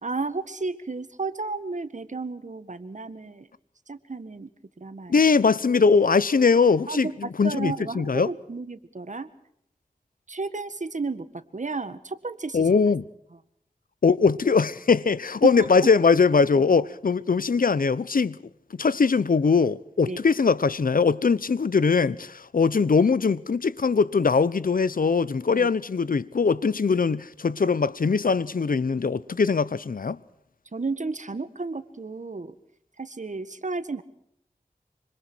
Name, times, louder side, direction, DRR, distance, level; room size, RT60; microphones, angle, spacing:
voice 1, 0.0-3.5 3.9-4.5 4.8-5.1 6.9-9.3 10.3-12.7 15.6-15.7 20.0-20.2 25.5-25.7 30.7-32.6 33.0-34.0, right 3 dB, 55° right, 1.7 m, -33 dB
voice 2, 5.1-8.3 12.5-13.0 14.0-18.4 18.8-30.2, left 5 dB, 70° left, 0.8 m, -21 dB
26.0 x 25.5 x 4.6 m
wide cardioid pair, 60°, 15 cm